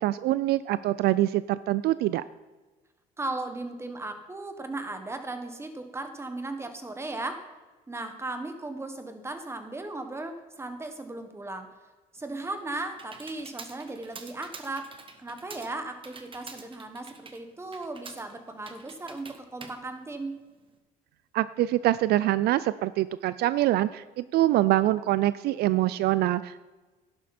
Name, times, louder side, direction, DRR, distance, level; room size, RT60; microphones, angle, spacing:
voice 1, 0.0-2.2 21.3-26.6, right 15 dB, 70° right, 16 dB, 0.4 m, -25 dB
voice 2, 3.2-7.4 7.9-11.7 12.1-14.9 15.2-20.3, right 2 dB, 15° right, 7 dB, 1.5 m, -36 dB
Computer keyboard, 12.2-20.8, right 4 dB, 30° right, 1.2 m, -47 dB
11.0 x 11.0 x 4.3 m, 1.2 s
cardioid pair, 110°, 17 cm